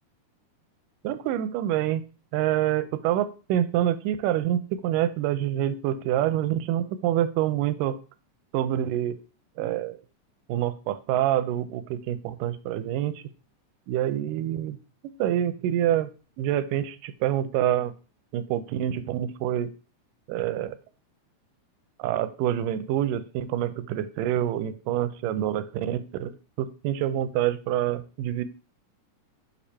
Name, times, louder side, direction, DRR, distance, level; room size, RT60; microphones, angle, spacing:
voice 1, 1.0-2.0 2.3-8.0 8.5-9.2 9.6-10.0 10.5-13.2 13.9-14.8 15.2-16.1 16.4-17.9 18.3-19.7 20.3-20.8 22.0-26.3 26.6-28.4, right 12 dB, 85° right, 12 dB, 2.2 m, -26 dB
6.7 x 2.7 x 5.5 m, 0.35 s
omnidirectional pair, 3.7 m